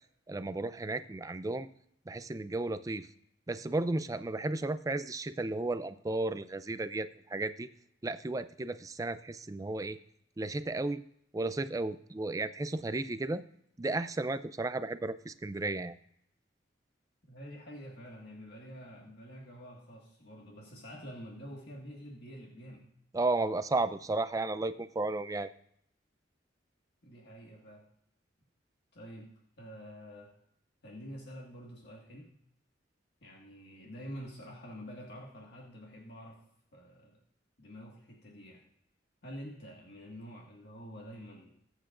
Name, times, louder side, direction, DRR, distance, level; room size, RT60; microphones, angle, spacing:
voice 1, 0.3-1.7 2.1-3.1 3.5-7.7 8.0-10.0 10.4-11.0 11.3-13.4 13.8-15.9 23.1-25.5, right 2 dB, 20° right, 13 dB, 0.4 m, -33 dB
voice 2, 17.3-22.9 27.0-27.8 28.9-29.3 29.6-30.3 30.8-32.3 33.2-36.4 36.7-37.2 37.6-38.6 39.2-41.6, equal, 60° left, -2 dB, 1.8 m, -47 dB
21.5 x 8.1 x 2.5 m, 0.72 s
head